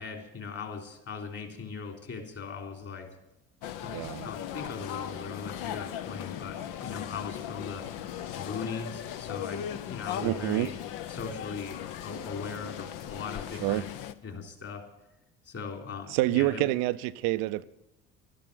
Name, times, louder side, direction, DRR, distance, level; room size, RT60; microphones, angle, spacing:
voice 1, 0.0-3.1 3.8-4.0 4.2-7.9 8.4-10.7 11.1-13.9 14.2-14.8 15.4-16.7, left 5 dB, 40° left, 3.6 m, -39 dB
sound 1, 3.6-14.1, left 10 dB, 60° left, 0.9 m, -38 dB
voice 2, 3.9-4.3 10.2-10.7 13.6-13.8 16.1-17.6, right 17 dB, 65° right, 0.6 m, -27 dB
12.0 x 11.5 x 8.0 m
hypercardioid pair, 60°, 37 cm